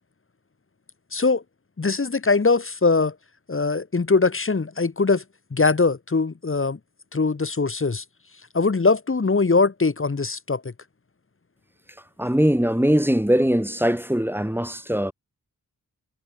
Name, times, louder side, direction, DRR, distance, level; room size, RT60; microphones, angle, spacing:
voice 1, 1.1-1.4 1.8-3.1 3.5-5.2 5.5-6.8 7.1-8.0 8.5-10.6, left 4 dB, 35° left, 1.0 m, -21 dB
voice 2, 12.2-15.1, equal, 5° right, 1.8 m, -21 dB
cardioid pair, 50°, 38 cm